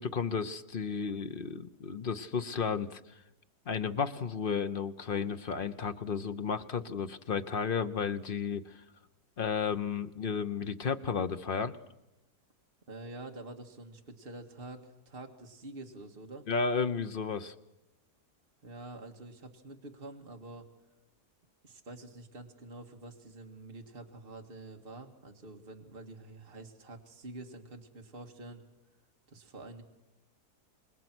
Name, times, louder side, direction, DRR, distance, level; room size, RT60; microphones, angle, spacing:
voice 1, 0.0-3.0 3.7-8.8 9.4-11.8 16.5-17.5, left 6 dB, 40° left, 10 dB, 0.9 m, -33 dB
voice 2, 12.9-16.5 18.6-20.7 21.6-28.6 29.3-29.8, right 2 dB, 35° right, 3 dB, 2.1 m, -47 dB
27.5 x 20.5 x 6.1 m, 0.93 s
omnidirectional pair, 1.7 m